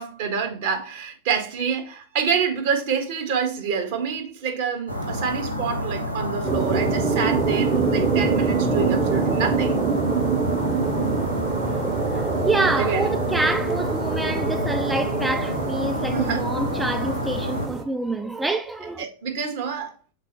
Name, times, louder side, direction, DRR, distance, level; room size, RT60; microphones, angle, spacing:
voice 1, 0.0-9.8 12.8-13.1 16.1-16.5 19.0-19.9, right 6 dB, 50° right, 1.6 m, -27 dB
sound 1, 4.9-17.7, left 1 dB, 90° right, 0.9 m, -29 dB
sound 2, 6.4-17.8, right 5 dB, 25° right, 1.0 m, -25 dB
voice 2, 12.1-19.0, right 2 dB, 10° right, 0.4 m, -27 dB
6.5 x 4.2 x 3.9 m
figure-of-eight pair, 90°, 0 cm